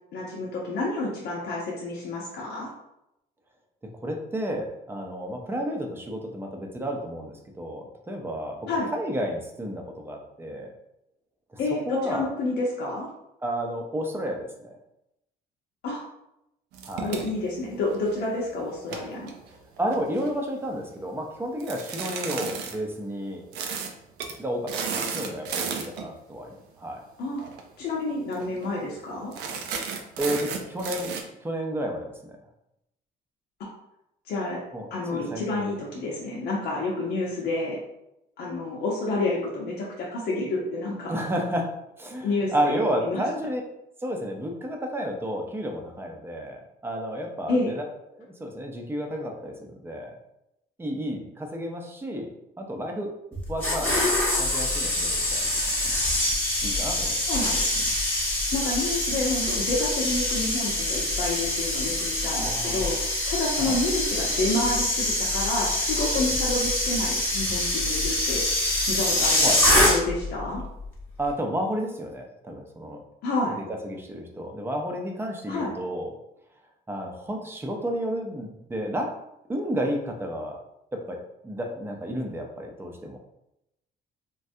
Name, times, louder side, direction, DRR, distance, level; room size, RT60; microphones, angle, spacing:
voice 1, 0.1-2.7 8.7-8.9 11.6-13.1 15.8-16.0 17.0-19.3 27.2-27.4 27.8-29.3 34.3-34.6 34.9-37.8 38.4-41.2 42.2-43.2 47.5-47.7 57.3-57.9 58.5-63.0 63.3-68.4 68.9-70.6 73.2-73.6 75.5-75.7, left 2 dB, 75° left, -4 dB, 0.7 m, -29 dB
voice 2, 3.8-10.7 11.5-11.6 11.9-12.3 13.4-14.8 16.8-17.2 19.8-23.4 24.4-27.0 30.2-31.1 31.4-32.4 34.7-35.7 41.1-43.6 44.0-47.8 48.1-50.1 50.8-52.3 52.6-53.1 53.5-55.5 56.6-57.5 62.3-62.9 63.6-63.8 69.4-69.6 71.2-73.0 73.8-76.1 76.9-79.1 79.5-80.6 80.9-83.2, equal, 15° right, 2 dB, 0.5 m, -31 dB
sound 1, 16.7-18.3 18.8-20.3 21.6-22.8 23.5-23.9 24.2-24.4 24.7-26.1 27.4-27.6 27.9-28.0 28.3-28.7 29.3-31.2, right 6 dB, 85° right, 0.5 m, -33 dB
sound 2, 53.4-70.3 70.6-70.9, left 1 dB, 10° left, 1.0 m, -25 dB
3.3 x 2.2 x 2.6 m, 0.85 s
cardioid pair, 110°, 17 cm